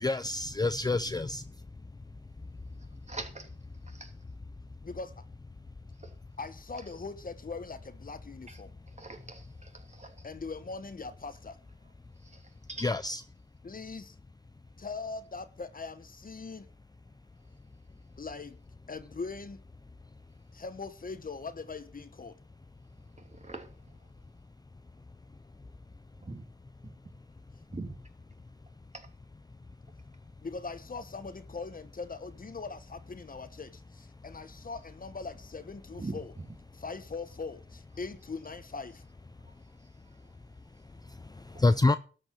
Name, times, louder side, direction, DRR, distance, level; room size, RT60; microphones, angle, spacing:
voice 1, 0.0-1.4 12.8-13.2 41.6-42.0, left 2 dB, 20° left, 0.5 m, -26 dB
voice 2, 3.1-3.5 3.8-4.1 6.0-6.1 6.8-6.9 8.5-8.6 8.9-10.3 12.2-12.9 23.2-23.9 26.2-26.4 26.8-26.9 27.7-28.0 28.9-29.1 35.9-36.2 39.4-39.5 41.5-41.6, right 3 dB, 35° right, 2.8 m, -43 dB
voice 3, 6.4-8.7 10.2-11.6 13.6-14.1 14.8-16.7 18.2-18.6 18.9-19.6 20.5-22.4 30.4-36.3 36.8-39.0, left 4 dB, 45° left, 1.2 m, -41 dB
13.0 x 5.3 x 8.5 m
cardioid pair, 65°, 20 cm